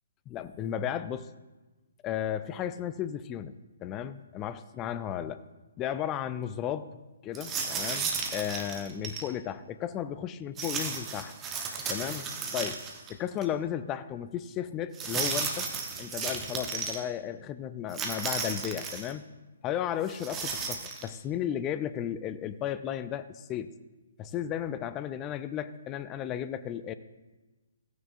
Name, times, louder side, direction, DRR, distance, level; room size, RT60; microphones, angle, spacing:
voice 1, 0.3-1.3 2.0-5.4 5.8-6.9 7.2-11.4 11.9-12.3 12.5-12.8 13.1-15.7 16.0-19.2 19.6-23.7 24.2-26.9, left 10 dB, 20° left, 13 dB, 0.4 m, -34 dB
sound 1, 7.3-9.3 10.6-13.1 13.4-13.5 14.9-17.0 17.9-19.1 20.1-21.1, right 5 dB, 15° right, 1.0 m, -34 dB
14.5 x 9.4 x 2.6 m, 1.2 s
figure-of-eight pair, 130°, 0 cm